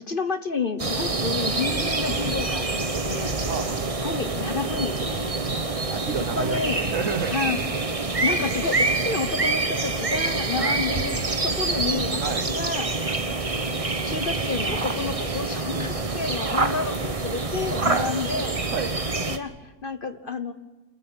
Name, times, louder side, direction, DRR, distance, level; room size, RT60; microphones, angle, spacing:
voice 1, 0.1-3.4 4.0-5.2 6.3-6.9 7.3-7.7 8.2-12.9 14.1-18.5 19.1-20.5, left 4 dB, 40° left, 10 dB, 1.1 m, -30 dB
sound 1, 0.8-19.4, right 3 dB, 25° right, 1.2 m, -26 dB
voice 2, 3.5-3.9 5.4-5.6 5.9-7.4 10.6-10.8 12.2-12.5 13.0-13.2 16.7-16.8 17.8-18.1 18.7-18.9, right 6 dB, 60° right, 12 dB, 1.4 m, -31 dB
26.5 x 14.5 x 9.0 m, 1.2 s
omnidirectional pair, 1.6 m